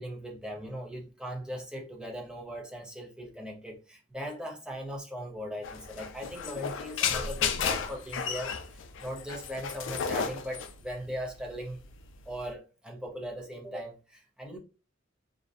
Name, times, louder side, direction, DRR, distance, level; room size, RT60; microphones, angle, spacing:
voice 1, 0.0-11.8 12.3-14.6, equal, 5° right, 0.5 m, -39 dB
sound 1, 5.6-12.5, left 6 dB, 70° left, 0.3 m, -33 dB
2.5 x 2.1 x 2.4 m
head